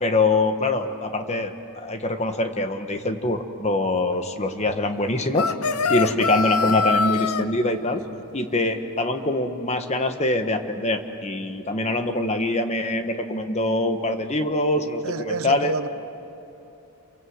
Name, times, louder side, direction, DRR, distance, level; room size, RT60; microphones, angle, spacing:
voice 1, 0.0-5.5 5.9-8.0 8.3-15.7, left 2 dB, 30° left, 1.3 m, -24 dB
sound 1, 5.3-7.4, left 5 dB, 80° left, 0.8 m, -23 dB
voice 2, 15.0-15.9, right 3 dB, 70° right, 0.9 m, -29 dB
28.5 x 23.5 x 8.1 m
head